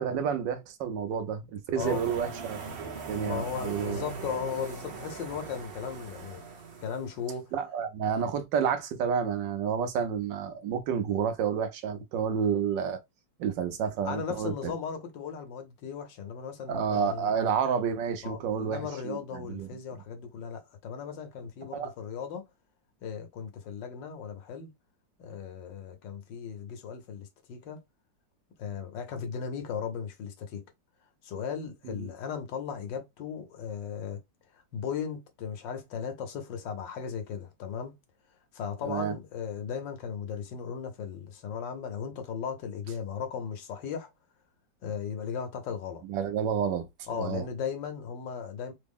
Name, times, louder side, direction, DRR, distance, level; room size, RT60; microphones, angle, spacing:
voice 1, 0.0-4.1 7.5-13.0 13.4-14.7 16.7-19.7 21.7-21.9 31.8-32.1 38.8-39.1 46.1-46.9 47.1-47.4, right 7 dB, 80° right, 1.4 m, -30 dB
sound 1, 1.8-7.3, right 4 dB, 50° right, 0.7 m, -40 dB
voice 2, 3.2-6.4 6.8-7.5 14.0-17.3 18.2-22.4 23.0-24.7 25.2-27.8 28.6-30.6 31.2-34.2 34.5-37.9 38.5-44.1 44.8-46.0 47.1-48.7, left 7 dB, 80° left, 1.5 m, -36 dB
3.8 x 2.0 x 3.5 m
omnidirectional pair, 2.0 m